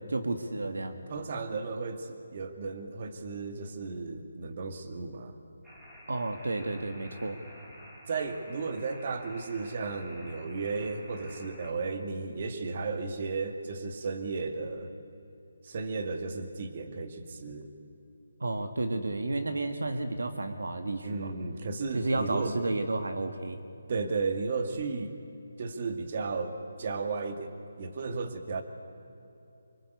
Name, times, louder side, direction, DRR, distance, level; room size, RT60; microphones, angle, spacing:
voice 1, 0.1-1.0 6.1-7.4 18.4-21.3 21.9-23.6, right 2 dB, 75° right, 7 dB, 1.8 m, -32 dB
voice 2, 1.1-5.4 8.1-14.9 15.6-17.7 21.0-22.5 23.9-25.2 25.6-27.5 27.8-28.6, right 4 dB, 45° right, 6 dB, 2.3 m, -34 dB
sound 1, 5.6-11.7, equal, 5° right, 5.1 m, -50 dB
25.0 x 24.5 x 8.3 m, 2.7 s
figure-of-eight pair, 155°, 0 cm